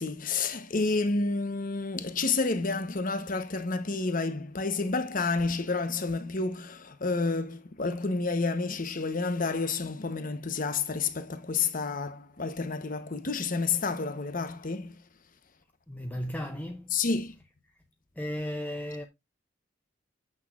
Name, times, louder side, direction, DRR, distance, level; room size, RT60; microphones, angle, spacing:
voice 1, 0.0-15.0 16.9-17.4, left 4 dB, 45° left, 1.0 m, -30 dB
voice 2, 15.9-17.0 17.2-17.5 18.2-19.1, equal, 10° left, 0.6 m, -35 dB
8.9 x 6.3 x 2.5 m
head